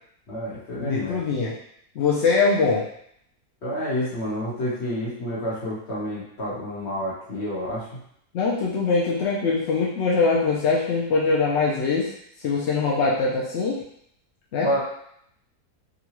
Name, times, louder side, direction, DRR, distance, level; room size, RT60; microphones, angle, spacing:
voice 1, 0.3-1.2 3.6-7.8 14.6-14.8, equal, 45° left, -8 dB, 1.4 m, -29 dB
voice 2, 0.8-1.5 2.0-2.9 8.3-12.1 12.4-13.8 14.5-14.7, left 4 dB, 65° left, -4 dB, 0.7 m, -22 dB
3.8 x 2.3 x 2.9 m, 0.71 s
omnidirectional pair, 1.7 m